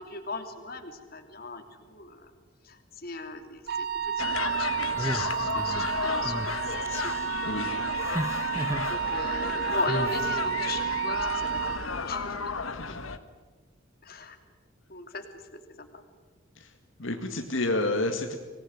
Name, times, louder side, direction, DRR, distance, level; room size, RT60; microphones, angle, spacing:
voice 1, 0.0-2.3 2.6-7.1 8.0-12.8 14.0-14.4 14.9-15.2 15.5-16.0, left 3 dB, 50° left, 5 dB, 2.9 m, -38 dB
Wind instrument woodwind instrument, 3.7-11.9, right 8 dB, 50° right, 1.5 m, -31 dB
sound 1, 4.2-13.2, left 5 dB, 90° left, 1.4 m, -33 dB
sound 2, 4.9-5.9 6.2-6.5 6.9-7.3 8.0-8.9 9.9-10.2, right 1 dB, 15° right, 1.0 m, -34 dB
voice 2, 17.0-18.4, left 2 dB, 75° left, 4 dB, 2.1 m, -29 dB
25.5 x 19.5 x 9.5 m, 1.4 s
head